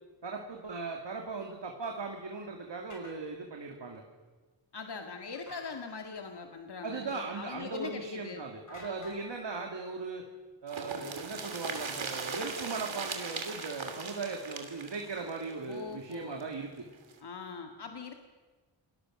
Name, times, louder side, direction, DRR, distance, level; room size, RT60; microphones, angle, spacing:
voice 1, 0.2-4.0 6.8-10.2 10.6-16.9, right 4 dB, 65° right, 2 dB, 2.6 m, -38 dB
sound 1, 2.9-3.2 5.3-5.7 8.7-9.2 11.7-12.5, left 1 dB, 40° left, 6.7 m, -49 dB
voice 2, 4.7-8.4 15.7-16.5 17.2-18.1, left 4 dB, 60° left, 4 dB, 2.0 m, -41 dB
sound 2, 10.7-16.4 16.7-16.8 17.1-17.2, right 5 dB, 85° right, 3.0 m, -39 dB
29.0 x 20.0 x 6.5 m, 1.3 s
wide cardioid pair, 80°, 46 cm